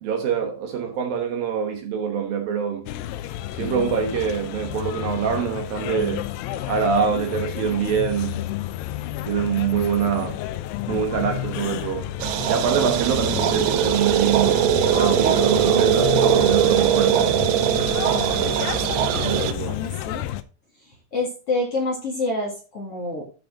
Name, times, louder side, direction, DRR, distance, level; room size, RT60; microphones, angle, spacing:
voice 1, 0.0-2.9 3.5-6.3 6.7-8.4 9.3-10.4 10.9-12.1 12.5-14.6 15.0-17.4 17.8-18.0 19.1-19.8, right 7 dB, 65° right, 2.7 m, -24 dB
sound 1, 2.9-20.4, left 13 dB, 80° left, 2.6 m, -31 dB
sound 2, 12.2-19.5, right 10 dB, 85° right, 3.0 m, -21 dB
voice 2, 19.6-20.2 21.1-23.2, left 2 dB, 45° left, 2.3 m, -27 dB
14.0 x 5.2 x 3.6 m
omnidirectional pair, 5.0 m